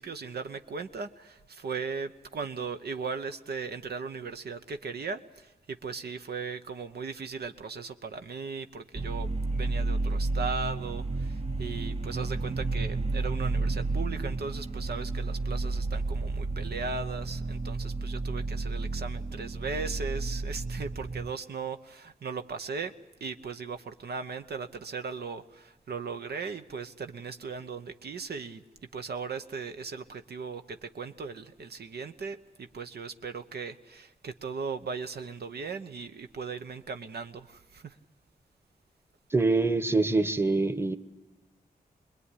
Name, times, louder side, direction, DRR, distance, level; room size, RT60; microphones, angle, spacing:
voice 1, 0.0-22.9 23.2-28.6 28.9-38.0, right 5 dB, 80° right, 8 dB, 1.0 m, -38 dB
sound 1, 8.9-21.3, right 3 dB, 40° right, 0.9 m, -31 dB
voice 2, 39.3-41.0, right 3 dB, 15° right, 11 dB, 1.2 m, -25 dB
24.0 x 21.0 x 10.0 m, 0.99 s
wide cardioid pair, 75°, 16 cm